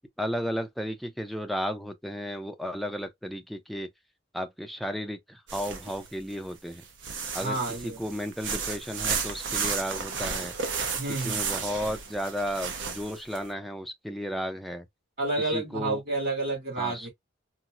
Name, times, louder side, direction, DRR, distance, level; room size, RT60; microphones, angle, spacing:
voice 1, 0.2-3.9 4.3-6.8 7.3-7.6 7.8-10.5 11.2-14.8 15.5-16.0 16.8-17.1, equal, ahead, 0.4 m, -33 dB
sound 1, 5.5-6.2 6.7-13.4, right 5 dB, 65° right, 0.7 m, -33 dB
voice 2, 7.4-8.1 11.0-11.4 15.2-17.1, right 2 dB, 45° right, 2.3 m, -30 dB
4.2 x 2.0 x 2.4 m
head